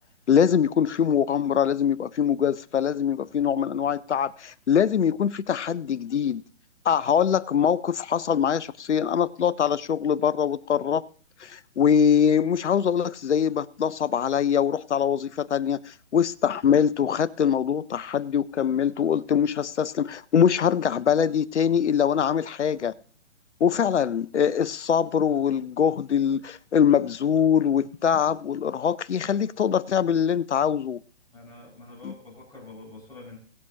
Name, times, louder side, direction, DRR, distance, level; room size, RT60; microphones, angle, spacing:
voice 1, 0.3-6.4 6.8-11.0 11.4-22.9 23.6-31.0, left 8 dB, 75° left, 0.7 m, -23 dB
voice 2, 31.3-33.4, left 2 dB, 10° left, 5.3 m, -45 dB
21.5 x 7.6 x 2.8 m
figure-of-eight pair, 135°, 35 cm